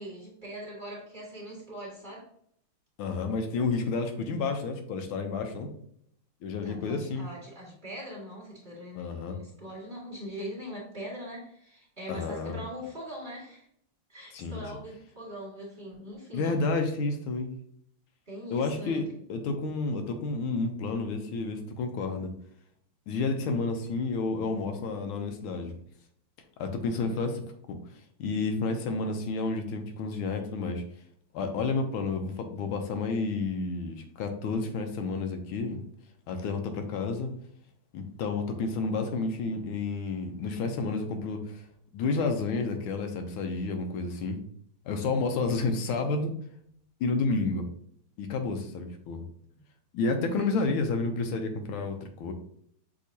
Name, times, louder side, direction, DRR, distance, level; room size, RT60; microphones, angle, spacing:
voice 1, 0.0-2.3 6.6-13.7 14.1-16.6 18.3-19.0 27.0-27.1 50.2-50.6, equal, 25° right, -5 dB, 1.7 m, -41 dB
voice 2, 3.0-5.7 6.4-7.3 8.9-9.4 12.1-12.6 14.3-14.6 16.3-17.5 18.5-22.3 23.1-25.8 26.6-27.4 27.7-27.8 28.2-30.8 31.3-35.8 36.3-37.3 37.9-41.6 41.9-44.4 44.8-46.3 47.0-47.7 48.2-49.2 49.9-52.3, left 3 dB, 80° left, 5 dB, 1.5 m, -30 dB
6.3 x 2.9 x 2.7 m, 0.68 s
omnidirectional pair, 2.3 m